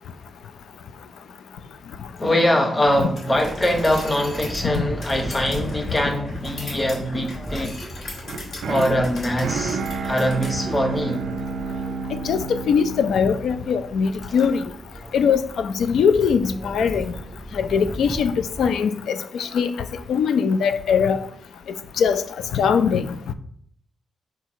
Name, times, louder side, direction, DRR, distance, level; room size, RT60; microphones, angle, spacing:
voice 1, 2.2-7.7 8.6-11.3, left 1 dB, 20° left, 0.9 m, -23 dB
sound 1, 3.2-10.5, left 2 dB, 60° left, 2.1 m, -40 dB
sound 2, 3.3-18.7, right 1 dB, 5° right, 0.3 m, -37 dB
sound 3, 8.2-14.4, right 4 dB, 75° right, 0.4 m, -31 dB
voice 2, 12.1-14.6 15.1-17.0 17.5-18.3 18.6-19.7 20.1-21.2 22.0-22.2 22.5-23.1, left 6 dB, 75° left, 0.4 m, -21 dB
4.6 x 4.0 x 5.6 m
wide cardioid pair, 145°, 0 cm